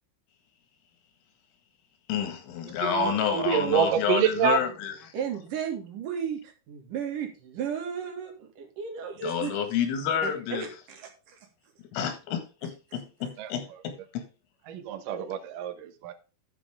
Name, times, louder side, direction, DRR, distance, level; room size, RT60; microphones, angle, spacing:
voice 1, 2.1-5.1 9.2-10.7 11.9-14.3, left 8 dB, 85° left, 4.3 m, -29 dB
voice 2, 2.8-4.6 13.4-13.5 14.7-16.1, right 10 dB, 75° right, 2.0 m, -27 dB
voice 3, 5.1-9.5 10.2-11.4 12.9-13.3, right 7 dB, 50° right, 3.1 m, -35 dB
11.5 x 7.2 x 3.6 m
omnidirectional pair, 5.5 m